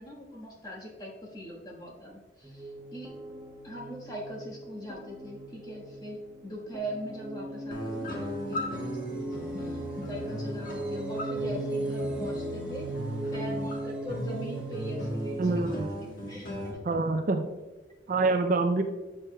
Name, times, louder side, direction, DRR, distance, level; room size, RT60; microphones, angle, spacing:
voice 1, 0.0-3.1 3.6-12.9 13.3-15.8 16.3-16.8, equal, 20° left, -3 dB, 1.4 m, -41 dB
sound 1, 2.4-15.6, right 1 dB, 5° right, 0.7 m, -37 dB
sound 2, 7.7-16.7, equal, 50° left, 1.3 m, -37 dB
voice 2, 15.4-15.8 16.8-17.5 18.1-18.8, right 3 dB, 45° right, 6 dB, 0.4 m, -25 dB
8.7 x 6.6 x 2.2 m, 1.2 s
head